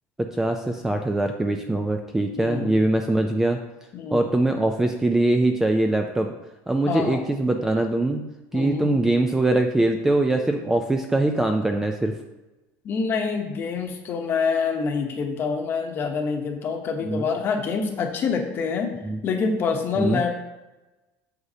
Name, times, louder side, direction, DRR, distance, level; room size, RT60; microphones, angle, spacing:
voice 1, 0.2-3.6 4.1-6.3 6.7-8.2 8.5-12.1 17.0-17.3 19.0-19.2 20.0-20.2, right 2 dB, 5° right, 4 dB, 0.3 m, -22 dB
voice 2, 2.4-2.8 3.9-4.2 6.9-7.2 8.5-8.9 12.8-18.9 19.2-20.4, left 5 dB, 35° left, 4 dB, 1.0 m, -26 dB
8.0 x 6.4 x 2.8 m, 1.1 s
cardioid pair, 160°, 7 cm